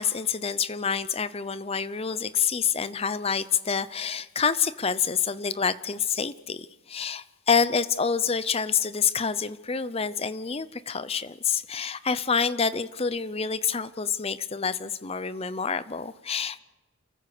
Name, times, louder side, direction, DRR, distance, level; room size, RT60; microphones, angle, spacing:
voice 1, 0.0-16.6, left 6 dB, 30° left, 15 dB, 0.7 m, -27 dB
29.5 x 14.5 x 6.7 m, 1.2 s
head